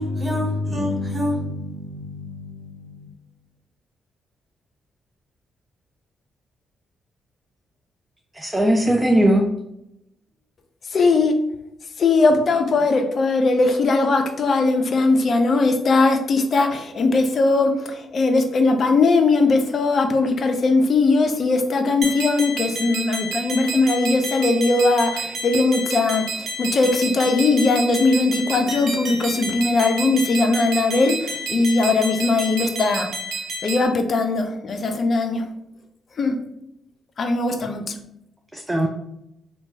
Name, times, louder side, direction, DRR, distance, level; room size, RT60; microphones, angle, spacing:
voice 1, 0.0-2.9, left 1 dB, 40° right, 1.0 m, -27 dB
voice 2, 8.3-9.4 38.5-38.9, right 1 dB, 10° right, 0.4 m, -18 dB
voice 3, 10.9-11.4 12.0-33.1 33.6-35.5 36.2-36.4 37.2-37.9, left 3 dB, 55° left, 0.4 m, -19 dB
sound 1, 22.0-33.9, right 2 dB, 65° right, 0.6 m, -30 dB
2.8 x 2.2 x 2.7 m
supercardioid pair, 50°, 0 cm